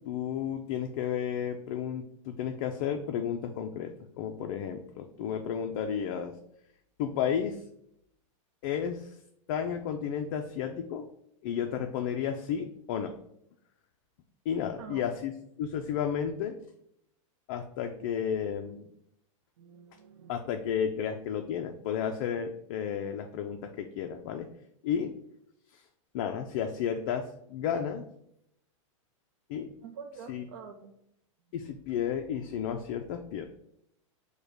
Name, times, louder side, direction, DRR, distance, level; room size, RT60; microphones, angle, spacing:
voice 1, 0.0-6.3 7.0-7.6 8.6-9.2 9.5-11.1 11.4-13.1 14.5-15.3 15.6-16.6 17.5-18.9 20.3-24.5 24.8-25.1 25.7-25.8 26.1-28.1 29.5-29.7 30.3-30.5 31.5-33.4, left 8 dB, 40° left, 4 dB, 0.4 m, -32 dB
voice 2, 19.6-20.3 29.8-30.9, right 6 dB, 55° right, 3 dB, 0.5 m, -46 dB
4.9 x 2.2 x 4.8 m, 0.76 s
supercardioid pair, 160°, 17 cm